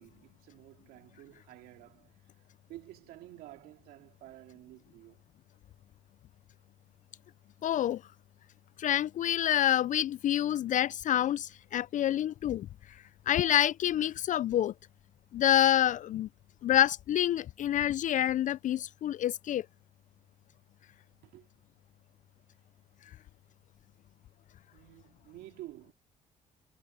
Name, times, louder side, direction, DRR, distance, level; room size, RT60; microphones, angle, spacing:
voice 1, 0.0-2.2 2.7-5.2 21.2-21.5 24.7-25.9, right 16 dB, 85° right, 2.6 m, -51 dB
voice 2, 7.6-8.0 8.8-14.7 15.3-16.3 16.6-19.7, left 11 dB, 55° left, 0.4 m, -27 dB
supercardioid pair, 60°, 15 cm